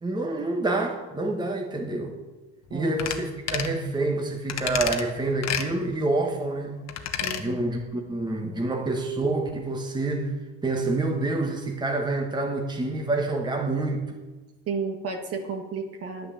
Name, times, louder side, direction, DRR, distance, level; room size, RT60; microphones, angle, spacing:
voice 1, 0.0-2.2 2.7-6.8 7.4-14.2, right 2 dB, 15° right, 2 dB, 1.5 m, -27 dB
sound 1, 3.0-3.2 3.5-3.7 4.5-5.0 5.4-5.7 6.9-7.4 7.8-7.9, left 9 dB, 60° left, 1.3 m, -29 dB
voice 2, 7.2-7.6 14.7-16.3, right 4 dB, 50° right, 3 dB, 1.9 m, -32 dB
10.0 x 9.7 x 7.4 m, 1.2 s
cardioid pair, 110°, 30 cm